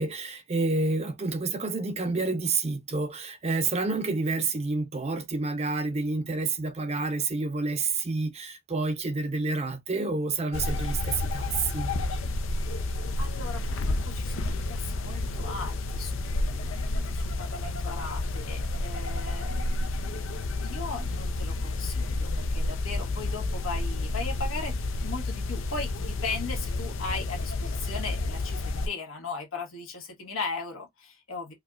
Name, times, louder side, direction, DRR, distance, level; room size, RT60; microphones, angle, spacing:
voice 1, 0.0-11.9, right 3 dB, 30° right, 0.6 m, -29 dB
sound 1, 10.5-28.9, left 2 dB, 65° left, 0.5 m, -30 dB
voice 2, 13.2-24.7 25.0-31.5, left 4 dB, 80° left, 1.5 m, -38 dB
4.7 x 2.3 x 2.4 m
head